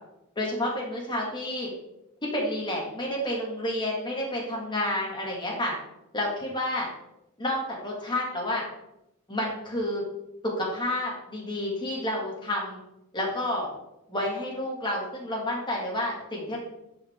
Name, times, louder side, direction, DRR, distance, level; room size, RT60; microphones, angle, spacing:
voice 1, 0.4-1.7 2.2-5.7 6.1-6.9 7.4-8.6 9.3-10.0 10.4-12.8 13.1-13.7 14.1-16.6, left 1 dB, 20° left, -3 dB, 2.0 m, -30 dB
9.9 x 5.0 x 3.6 m, 0.87 s
head